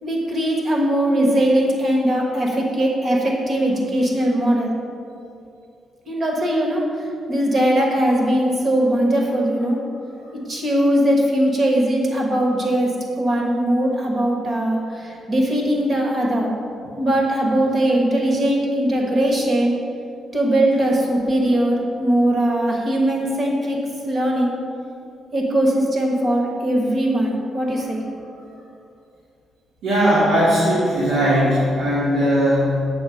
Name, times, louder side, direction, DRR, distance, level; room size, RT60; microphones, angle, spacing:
voice 1, 0.0-4.8 6.1-9.8 10.3-16.5 16.9-19.7 20.3-23.8 24.1-24.5 25.3-28.0, right 1 dB, 30° right, -1 dB, 1.2 m, -20 dB
voice 2, 29.8-32.8, equal, 70° right, -9 dB, 2.1 m, -18 dB
8.0 x 4.2 x 6.3 m, 2.6 s
cardioid pair, 170°, 0 cm